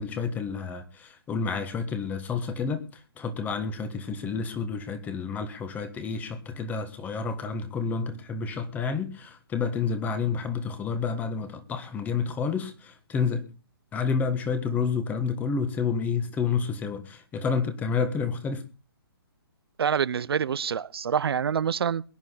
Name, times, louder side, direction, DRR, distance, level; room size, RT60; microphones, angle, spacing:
voice 1, 0.0-2.9 3.2-13.5 13.9-18.6, left 5 dB, 15° left, 1.4 m, -29 dB
voice 2, 19.8-22.0, right 7 dB, 75° right, 0.6 m, -26 dB
22.0 x 9.6 x 4.0 m
hypercardioid pair, 150°, 13 cm